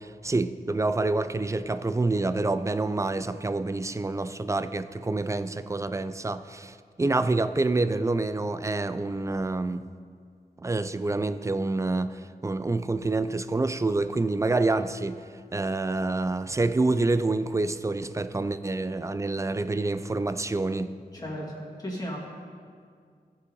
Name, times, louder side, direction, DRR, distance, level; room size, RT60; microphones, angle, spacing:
voice 1, 0.0-9.8 10.6-15.2 15.5-20.9, right 2 dB, 20° right, 0.3 m, -27 dB
voice 2, 21.1-22.2, equal, 25° left, 2.3 m, -35 dB
16.5 x 5.8 x 3.9 m
wide cardioid pair, 95°, 16 cm